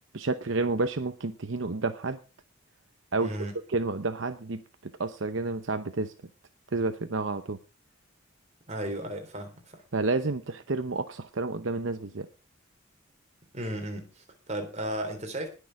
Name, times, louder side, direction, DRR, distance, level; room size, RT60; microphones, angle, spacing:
voice 1, 0.1-2.2 3.1-4.6 5.0-6.1 6.7-7.6 9.9-12.3, right 3 dB, 65° right, 9 dB, 0.8 m, -30 dB
voice 2, 3.2-3.5 8.7-9.8 13.5-15.5, right 1 dB, 35° right, 5 dB, 3.5 m, -35 dB
20.0 x 6.8 x 4.8 m, 0.33 s
head